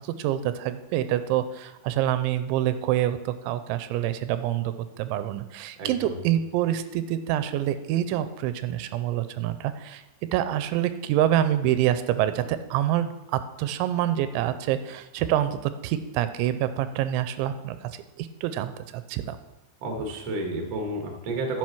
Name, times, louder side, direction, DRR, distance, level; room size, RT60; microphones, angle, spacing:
voice 1, 0.0-10.0 10.3-19.4, right 12 dB, 90° right, 11 dB, 3.0 m, -26 dB
voice 2, 5.8-6.1 19.8-21.6, right 2 dB, 50° right, 2 dB, 2.1 m, -31 dB
10.5 x 6.9 x 6.0 m, 1.0 s
omnidirectional pair, 5.3 m